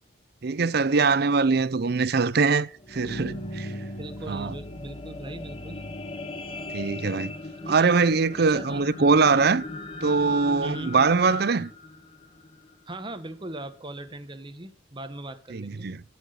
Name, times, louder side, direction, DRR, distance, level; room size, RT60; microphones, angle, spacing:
voice 1, 0.4-3.7 4.3-4.5 6.7-7.3 7.7-9.6 10.0-11.7 15.5-16.0, right 4 dB, 55° right, 0.6 m, -22 dB
sound 1, 2.7-13.1 13.7-13.8, left 2 dB, 30° left, 1.1 m, -38 dB
voice 2, 4.0-5.8 7.7-7.9 8.4-8.9 10.6-11.0 12.9-15.9, right 1 dB, 25° right, 1.2 m, -39 dB
16.5 x 6.2 x 6.5 m
head